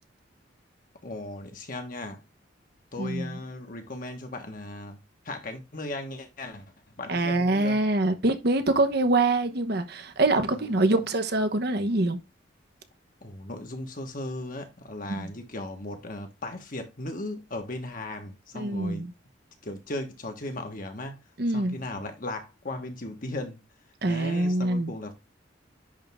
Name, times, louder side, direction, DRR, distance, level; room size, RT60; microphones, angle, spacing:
voice 1, 1.0-2.2 2.9-5.0 5.2-6.7 7.0-7.8 10.5-11.0 13.2-19.1 19.6-21.2 21.5-23.6 24.1-25.1, left 2 dB, 50° left, 1.5 m, -37 dB
voice 2, 3.0-3.4 7.1-12.2 15.1-15.3 18.5-19.1 21.4-21.8 24.0-24.9, right 2 dB, 60° right, 1.0 m, -25 dB
10.5 x 3.6 x 3.6 m
head